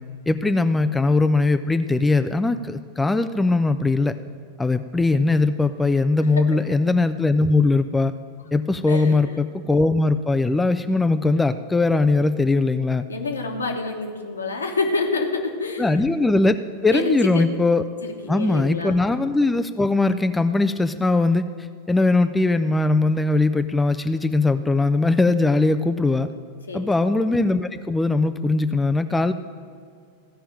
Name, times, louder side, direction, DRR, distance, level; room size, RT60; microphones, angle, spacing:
voice 1, 0.3-4.1 4.6-8.1 8.5-13.0 15.8-16.6 16.8-17.8 18.3-21.5 21.9-26.3 26.7-29.3, left 3 dB, 10° left, 9 dB, 0.4 m, -20 dB
voice 2, 6.4-6.8 8.9-9.2 13.1-16.0 16.9-17.4 18.0-18.9 26.7-26.9, left 3 dB, 75° left, 3 dB, 1.5 m, -27 dB
15.0 x 5.7 x 8.8 m, 2.2 s
figure-of-eight pair, 90°, 0 cm